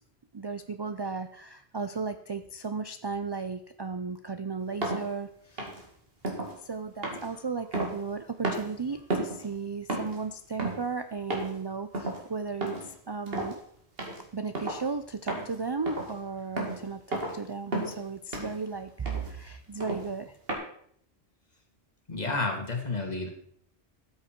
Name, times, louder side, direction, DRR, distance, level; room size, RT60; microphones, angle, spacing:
voice 1, 0.3-5.7 6.6-13.6 14.3-20.4, right 4 dB, 40° right, 10 dB, 0.4 m, -35 dB
sound 1, 4.8-5.0 5.6-5.8 6.2-6.5 7.0-8.2 8.4-8.7 9.1-9.5 9.9-10.2 10.6-10.9 11.3-11.6 11.9-12.2 12.6-12.9 13.3-13.5 14.0-14.2 14.5-14.9 15.3-15.5 15.9-16.1 16.6-16.8 17.1-17.4 17.7-18.0 18.3-18.6 19.1-19.3 19.8-20.1 20.5-20.6, right 2 dB, 60° right, 2.5 m, -32 dB
voice 2, 22.1-23.3, left 3 dB, 40° left, 2 dB, 2.1 m, -30 dB
13.0 x 7.5 x 4.5 m, 0.64 s
omnidirectional pair, 1.1 m